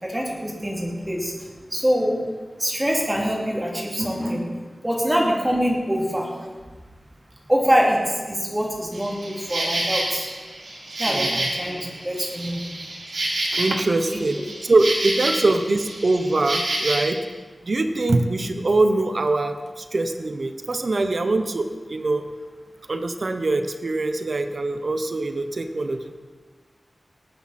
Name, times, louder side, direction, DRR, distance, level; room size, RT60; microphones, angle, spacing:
voice 1, 0.0-1.3 1.7-2.2 2.6-4.4 4.8-6.3 7.5-10.3 11.0-11.8 12.0-12.6 14.1-14.2, equal, 15° right, -2 dB, 3.0 m, -24 dB
Insect, 8.9-17.0, right 1 dB, 80° right, 3.5 m, -28 dB
voice 2, 11.1-11.5 13.5-17.2 17.6-22.2 22.9-26.2, right 2 dB, 55° right, 7 dB, 0.8 m, -23 dB
18.5 x 9.6 x 4.3 m, 1.4 s
wide cardioid pair, 95°, 0 cm